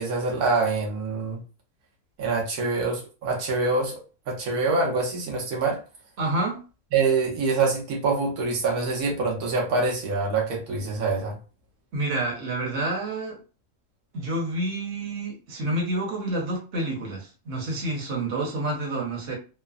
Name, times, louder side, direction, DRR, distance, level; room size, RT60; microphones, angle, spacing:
voice 1, 0.0-1.4 2.2-3.9 4.3-5.8 6.9-11.4, right 3 dB, 85° right, 1.3 m, -25 dB
voice 2, 6.2-6.6 11.9-13.4 14.1-19.4, right 2 dB, 55° right, 1.2 m, -28 dB
3.1 x 2.1 x 2.4 m
omnidirectional pair, 1.5 m